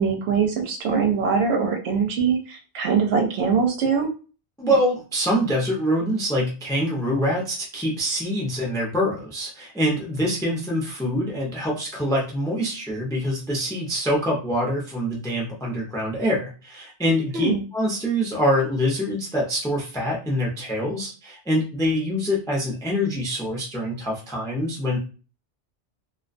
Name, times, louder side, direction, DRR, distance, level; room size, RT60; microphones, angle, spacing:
voice 1, 0.0-4.1 17.3-17.6, right 5 dB, 70° right, 4 dB, 0.8 m, -22 dB
voice 2, 4.6-25.0, equal, 5° left, -2 dB, 0.4 m, -25 dB
2.3 x 2.2 x 2.5 m, 0.35 s
omnidirectional pair, 1.2 m